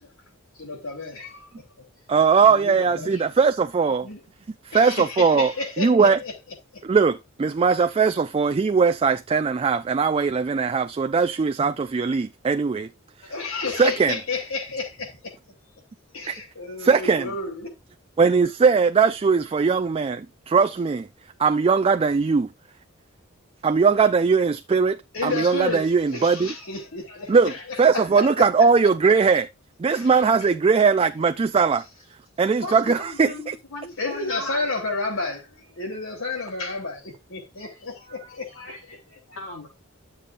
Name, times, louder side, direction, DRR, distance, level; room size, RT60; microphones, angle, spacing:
voice 1, 0.6-1.5 2.4-3.2 4.0-4.2 4.7-6.3 13.3-15.3 16.1-17.7 25.1-28.5 29.9-30.1 34.0-39.4, left 3 dB, 70° left, 3.0 m, -31 dB
voice 2, 2.1-4.1 4.6-5.5 5.8-6.2 6.8-12.9 13.2-13.3 13.8-14.2 16.3-16.4 16.8-17.3 18.2-21.1 21.4-22.5 23.6-26.5 27.3-27.5 27.8-29.5 29.8-31.9 32.4-33.5, right 5 dB, 25° right, 0.3 m, -20 dB
voice 3, 32.6-34.7 39.4-39.7, left 1 dB, 85° left, 4.1 m, -36 dB
11.0 x 7.0 x 2.5 m
head